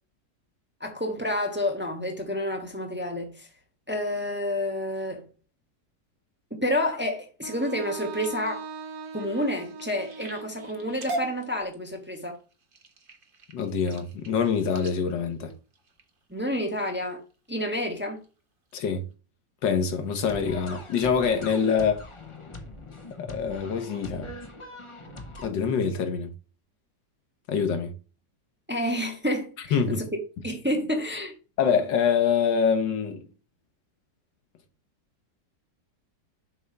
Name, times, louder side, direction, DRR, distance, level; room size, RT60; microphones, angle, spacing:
voice 1, 0.8-3.5 3.9-5.2 6.5-8.6 9.1-12.4 16.3-17.2 17.5-18.2 28.7-30.1 30.4-31.3, left 1 dB, 5° right, 1.2 m, -29 dB
Wind instrument woodwind instrument, 7.4-11.5, right 5 dB, 60° right, 0.9 m, -41 dB
sound 1, 7.8-16.5 17.1-17.5 17.9-18.3 18.7-18.8 19.1-19.2, right 1 dB, 35° right, 1.1 m, -42 dB
voice 2, 13.5-15.5 18.7-19.0 19.6-22.0 23.2-24.3 25.4-26.3 27.5-27.9 29.7-30.0 31.6-33.3, left 6 dB, 85° left, 1.8 m, -25 dB
sound 2, 20.2-25.5, left 2 dB, 25° left, 0.7 m, -42 dB
7.3 x 3.4 x 5.4 m
omnidirectional pair, 1.9 m